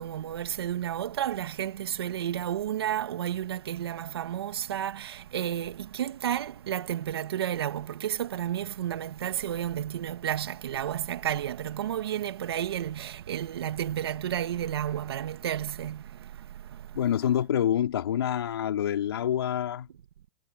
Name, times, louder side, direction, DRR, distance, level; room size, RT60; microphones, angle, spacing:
voice 1, 0.0-16.0, right 10 dB, 80° right, 2.1 m, -31 dB
voice 2, 16.9-19.9, left 10 dB, 80° left, 3.8 m, -27 dB
hypercardioid pair, 125°, 13 cm